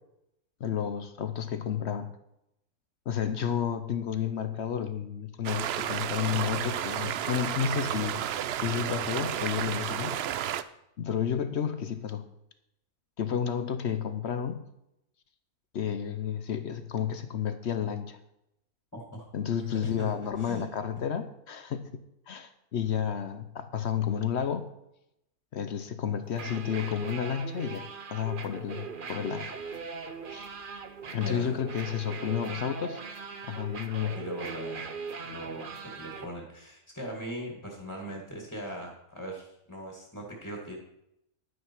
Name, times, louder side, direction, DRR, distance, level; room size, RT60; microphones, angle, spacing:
voice 1, 0.6-2.1 3.1-8.2 8.6-10.2 11.0-12.3 13.2-14.6 15.7-18.2 19.3-24.7 25.5-29.5 30.3-30.5 31.1-33.0 33.4-34.2, left 8 dB, 55° left, 10 dB, 0.8 m, -31 dB
sound 1, 5.4-10.6, right 10 dB, 85° right, 0.5 m, -32 dB
voice 2, 18.9-19.2 19.8-20.1 20.4-20.6 31.2-31.6 34.1-35.0 35.3-40.8, equal, 10° left, 0 dB, 1.9 m, -40 dB
sound 2, 26.3-36.3, right 5 dB, 40° right, 0.8 m, -40 dB
10.5 x 9.5 x 4.5 m, 0.82 s
omnidirectional pair, 1.6 m